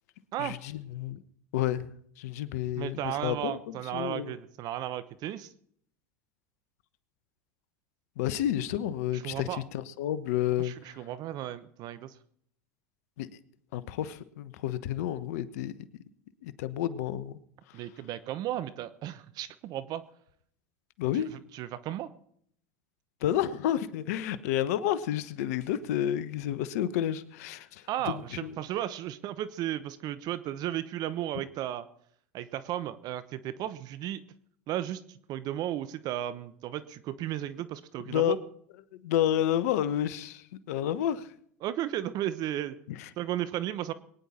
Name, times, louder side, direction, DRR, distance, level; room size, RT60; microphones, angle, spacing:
voice 1, 0.4-1.2 1.5-4.3 8.2-10.7 13.2-13.3 13.7-15.7 16.4-17.4 21.0-21.3 23.2-28.6 38.1-38.3 39.0-41.3 42.9-43.1, left 11 dB, 70° left, 1.1 m, -30 dB
voice 2, 2.8-5.5 9.1-9.6 10.6-12.1 17.7-20.0 21.1-21.2 21.5-22.1 27.9-31.9 32.3-34.2 34.7-38.4 41.6-42.8 43.2-43.9, right 12 dB, 50° right, 1.0 m, -34 dB
22.0 x 10.0 x 4.3 m
hypercardioid pair, 90°, 9 cm